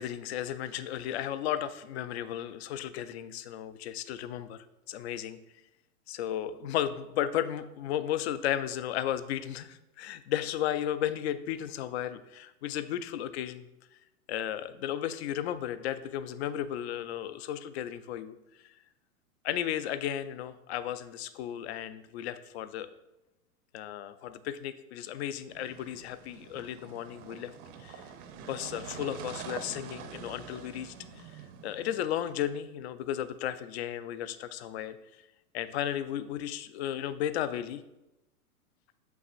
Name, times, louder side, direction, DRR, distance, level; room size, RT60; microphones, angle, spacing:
voice 1, 0.0-5.4 6.1-13.7 14.3-18.4 18.6-18.7 19.4-22.9 23.7-27.5 27.8-28.1 28.4-35.0 35.5-37.8, left 11 dB, 50° left, 13 dB, 0.4 m, -34 dB
sound 1, 25.5-32.5, right 7 dB, 40° right, 0.6 m, -46 dB
7.2 x 5.8 x 2.5 m, 0.95 s
hypercardioid pair, 115°, 44 cm